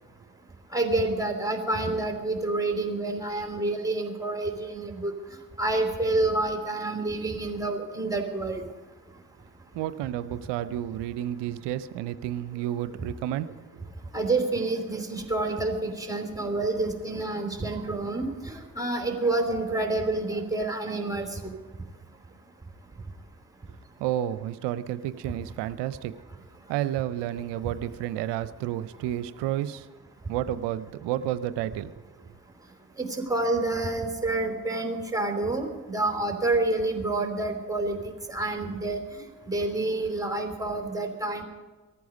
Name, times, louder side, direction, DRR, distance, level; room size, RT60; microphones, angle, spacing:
voice 1, 0.7-5.1 5.6-8.6 14.1-21.5 33.0-41.4, right 2 dB, 10° right, 4 dB, 3.6 m, -28 dB
voice 2, 9.7-13.9 24.0-26.1 26.7-29.9 30.3-31.9, right 12 dB, 70° right, 14 dB, 0.7 m, -31 dB
19.0 x 14.0 x 5.3 m, 1.3 s
hypercardioid pair, 40°, 43 cm